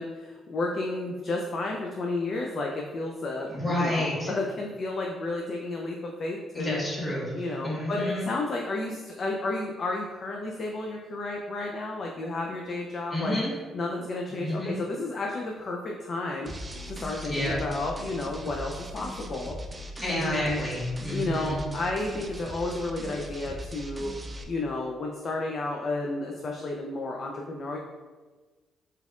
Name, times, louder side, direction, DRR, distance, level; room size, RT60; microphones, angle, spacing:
voice 1, 0.0-6.8 7.3-13.4 13.7-16.5 16.9-19.6 20.1-20.6 21.1-24.1 24.5-27.8, left 2 dB, 50° left, 0 dB, 0.5 m, -32 dB
voice 2, 3.5-4.3 6.5-7.3 7.6-8.3 13.1-13.5 14.3-14.8 17.3-17.6 20.0-21.6, equal, 25° left, -5 dB, 1.4 m, -30 dB
sound 1, 16.5-24.4, equal, 25° right, 0.4 m, -40 dB
4.1 x 4.0 x 2.4 m, 1.3 s
cardioid pair, 90°, 0 cm